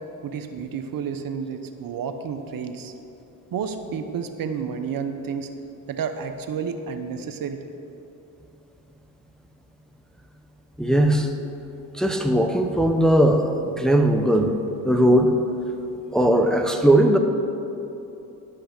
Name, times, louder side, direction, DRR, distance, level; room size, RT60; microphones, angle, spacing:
voice 1, 0.2-2.9 3.5-5.5 5.9-7.6, right 6 dB, 50° right, 8 dB, 0.9 m, -30 dB
voice 2, 10.8-11.3 11.9-14.5 14.8-15.3 16.1-17.2, right 1 dB, ahead, 4 dB, 0.8 m, -19 dB
11.5 x 5.7 x 6.5 m, 2.9 s
supercardioid pair, 75°, 43 cm